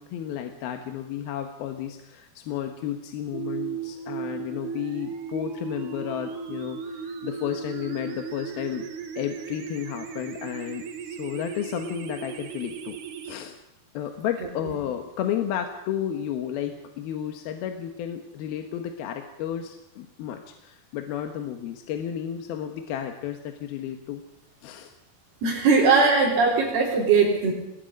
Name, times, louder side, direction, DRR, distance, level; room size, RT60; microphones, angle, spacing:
voice 1, 0.0-8.8 9.2-13.0 13.2-13.5 13.9-24.2 24.6-24.9, left 10 dB, 75° left, 5 dB, 3.0 m, -32 dB
sound 1, 3.3-13.3, right 6 dB, 60° right, 2.6 m, -36 dB
voice 2, 25.4-27.5, right 4 dB, 80° right, -5 dB, 5.5 m, -20 dB
27.5 x 20.5 x 5.3 m, 0.87 s
omnidirectional pair, 4.5 m